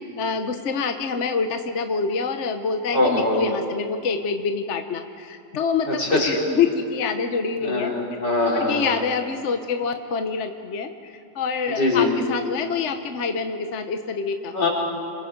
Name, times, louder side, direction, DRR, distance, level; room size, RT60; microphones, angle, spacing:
voice 1, 0.2-8.2 8.5-14.6, left 5 dB, 50° left, 6 dB, 1.1 m, -26 dB
voice 2, 2.9-3.4 5.9-6.3 7.6-8.9 11.8-12.1 14.5-14.7, left 2 dB, 65° left, -5 dB, 5.5 m, -22 dB
27.0 x 23.5 x 5.2 m, 2.5 s
omnidirectional pair, 2.0 m